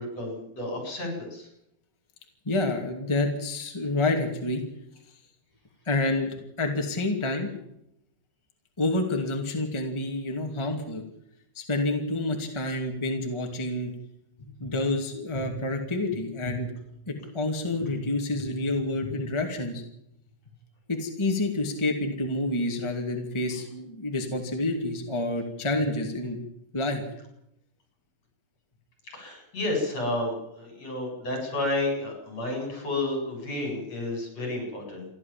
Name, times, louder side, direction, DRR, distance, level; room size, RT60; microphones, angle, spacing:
voice 1, 0.0-1.5 29.1-35.1, left 2 dB, 55° left, 2 dB, 8.9 m, -31 dB
voice 2, 2.5-4.6 5.9-7.5 8.8-11.0 11.5-13.9 14.6-16.7 17.1-19.8 20.9-26.4 26.7-27.0, left 2 dB, 10° left, 3 dB, 2.2 m, -28 dB
29.0 x 12.0 x 7.5 m, 0.79 s
omnidirectional pair, 3.4 m